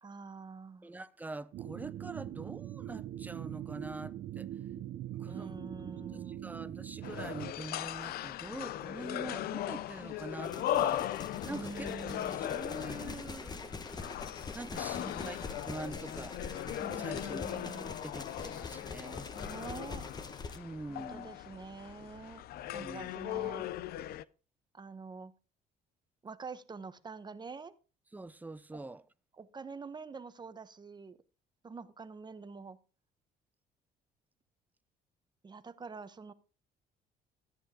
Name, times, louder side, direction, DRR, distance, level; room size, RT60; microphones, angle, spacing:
voice 1, 0.0-0.9 5.3-6.5 11.5-12.5 14.9-15.3 16.8-18.0 19.3-20.1 20.9-22.4 22.7-23.7 24.7-25.3 26.2-27.7 28.7-28.8 29.4-31.2 31.6-32.8 35.4-36.3, right 4 dB, 25° right, 1.1 m, -46 dB
voice 2, 0.8-4.5 5.2-11.9 12.3-13.9 14.5-16.4 16.8-17.4 18.0-19.3 20.6-21.3 22.5-23.1 28.1-29.0, right 2 dB, 10° right, 0.7 m, -45 dB
sound 1, 1.5-7.5, right 12 dB, 65° right, 0.9 m, -42 dB
sound 2, 7.0-24.2, left 13 dB, 65° left, 0.5 m, -38 dB
sound 3, 10.4-20.6, left 4 dB, 25° left, 1.2 m, -44 dB
14.0 x 10.0 x 3.8 m
cardioid pair, 110°, 17 cm